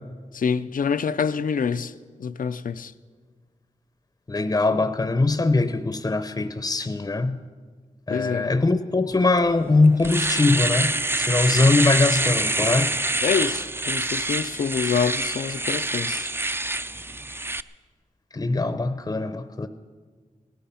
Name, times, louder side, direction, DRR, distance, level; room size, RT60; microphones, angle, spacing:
voice 1, 0.3-1.9 2.2-2.9 8.1-8.5 13.2-16.3, left 6 dB, 75° left, 0.5 m, -26 dB
voice 2, 4.3-7.4 8.1-12.9 18.3-19.7, left 3 dB, 30° left, 0.6 m, -22 dB
Domestic sounds home sounds, 9.4-9.5 9.9-17.6, right 2 dB, 15° right, 0.4 m, -26 dB
18.0 x 14.0 x 5.7 m
wide cardioid pair, 90°, 14 cm